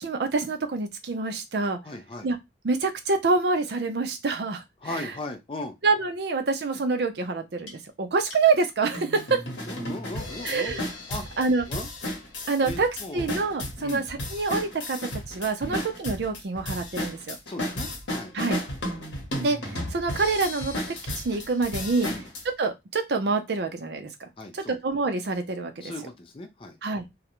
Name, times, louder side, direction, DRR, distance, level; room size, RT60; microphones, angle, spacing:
voice 1, 0.0-1.8 2.2-2.4 2.6-4.6 4.9-5.1 5.8-9.4 10.4-10.8 11.4-11.6 12.5-12.9 13.1-17.4 18.3-18.6 19.4-20.7 21.2-22.1 22.6-24.3 24.5-25.9 26.8-27.1, right 4 dB, 65° right, 6 dB, 0.5 m, -26 dB
voice 2, 1.8-2.3 4.8-5.7 9.7-10.8 11.1-11.3 11.7-11.9 12.6-13.3 13.8-14.0 15.6-15.9 17.5-18.3 22.1-22.3 24.4-24.8 25.8-26.8, left 2 dB, 30° left, 6 dB, 0.4 m, -37 dB
sound 1, 7.7-7.8 8.3-8.4 8.9-22.4, left 1 dB, 85° left, 0.9 m, -33 dB
2.4 x 2.1 x 2.9 m, 0.20 s
head